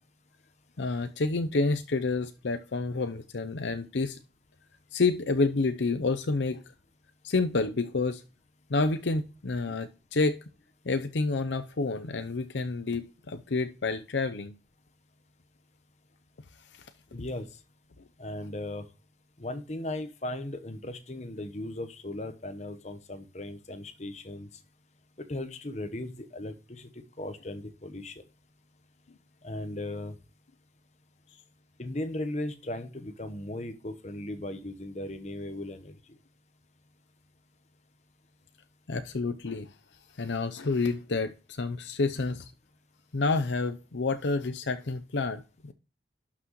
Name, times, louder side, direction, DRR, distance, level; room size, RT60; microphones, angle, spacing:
voice 1, 0.8-4.2 4.9-6.6 7.2-8.2 8.7-10.4 10.9-14.5 38.9-39.7 40.2-42.5 43.1-45.7, left 3 dB, 90° left, 0.7 m, -29 dB
voice 2, 17.1-17.5 18.2-18.9 19.4-24.5 25.2-28.2 29.4-30.1 31.8-36.0, left 1 dB, 40° left, 1.0 m, -37 dB
11.5 x 6.0 x 3.1 m
head